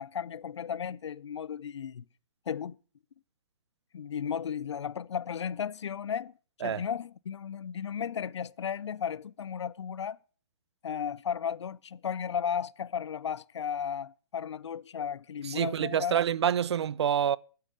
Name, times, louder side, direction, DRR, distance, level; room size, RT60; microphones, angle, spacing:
voice 1, 0.0-2.0 2.5-2.8 3.9-6.3 6.6-10.2 10.8-16.2, left 8 dB, 85° left, 0.5 m, -34 dB
voice 2, 15.4-17.4, right 9 dB, 75° right, 0.4 m, -27 dB
9.3 x 8.4 x 6.3 m
hypercardioid pair, 150°, 14 cm